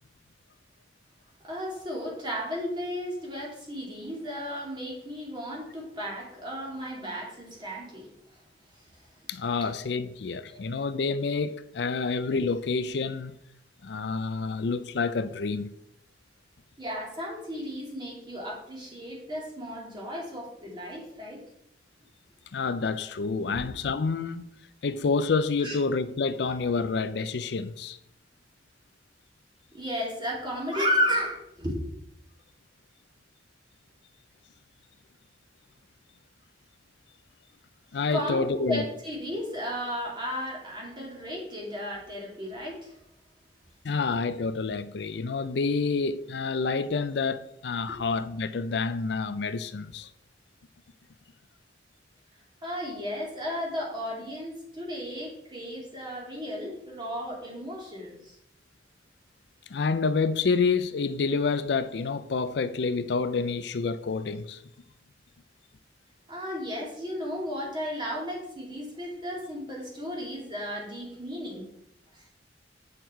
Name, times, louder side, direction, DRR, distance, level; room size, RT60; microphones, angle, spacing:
voice 1, 1.4-8.1 8.7-8.8 16.8-21.4 25.6-25.8 29.7-31.8 38.1-43.0 52.6-58.4 66.3-71.7 72.1-72.2, equal, 25° right, 2.8 m, -34 dB
voice 2, 9.3-13.3 13.8-15.7 22.5-24.5 24.8-28.0 37.9-38.8 43.8-50.1 59.7-64.6, left 4 dB, 65° left, 0.5 m, -28 dB
9.0 x 6.3 x 4.5 m
head